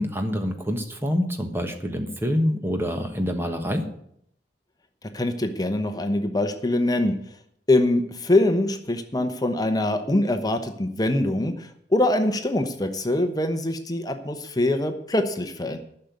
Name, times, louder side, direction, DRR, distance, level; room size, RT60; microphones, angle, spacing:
voice 1, 0.0-3.8, equal, 15° right, 5 dB, 1.3 m, -26 dB
voice 2, 5.1-7.2 7.7-15.8, left 1 dB, 20° left, 7 dB, 0.9 m, -23 dB
11.0 x 6.6 x 9.4 m, 0.70 s
head